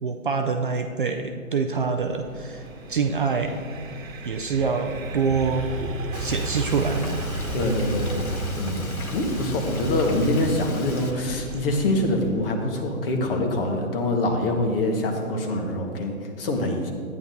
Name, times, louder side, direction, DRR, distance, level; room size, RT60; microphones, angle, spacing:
voice 1, 0.0-3.6 4.2-5.7 6.2-7.2, right 5 dB, 40° right, 4 dB, 0.5 m, -26 dB
Boat Water vehicle, 1.7-12.5, equal, 25° left, 1.9 m, -39 dB
sound 1, 2.7-11.9, right 2 dB, 65° right, 1.2 m, -33 dB
Frying (food), 6.1-11.1, left 3 dB, 75° left, 1.3 m, -40 dB
voice 2, 7.5-8.9 9.1-16.9, left 1 dB, 40° left, 3 dB, 1.4 m, -25 dB
13.0 x 9.4 x 2.7 m, 2.1 s
figure-of-eight pair, 135°, 43 cm